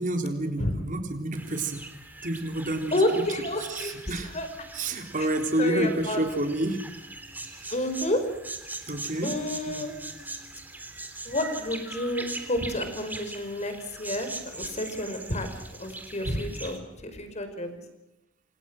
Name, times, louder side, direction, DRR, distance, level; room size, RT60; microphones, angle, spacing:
voice 1, 0.0-1.8 2.2-3.2 3.6-4.3 4.7-6.9 7.5-7.8 8.9-9.4 9.7-9.9, right 1 dB, 40° right, 5 dB, 3.8 m, -29 dB
sound 1, 1.4-16.8, right 2 dB, 10° right, 3.1 m, -41 dB
voice 2, 2.9-4.0 4.3-4.5 5.2-5.3 5.6-6.2 7.7-8.2 9.2-9.9 11.2-13.7 14.0-15.5 15.8-17.8, left 1 dB, 35° left, 8 dB, 4.9 m, -29 dB
28.0 x 27.5 x 6.2 m, 0.91 s
head